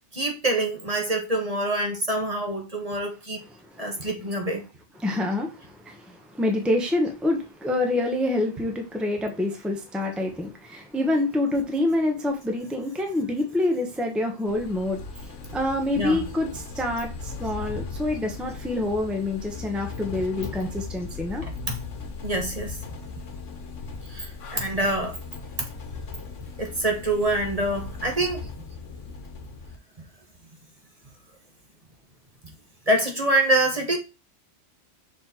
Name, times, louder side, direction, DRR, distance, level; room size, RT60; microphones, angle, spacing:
voice 1, 0.1-3.4 3.8-4.6 15.9-16.3 21.4-21.8 22.2-22.8 24.1-25.1 25.6-25.7 26.6-28.4 32.9-34.0, right 1 dB, 30° right, 1.6 m, -25 dB
voice 2, 3.4-4.4 4.9-21.5, left 2 dB, ahead, 1.1 m, -27 dB
sound 1, 14.5-29.8, left 4 dB, 85° left, 1.4 m, -38 dB
6.4 x 4.4 x 4.4 m
omnidirectional pair, 1.2 m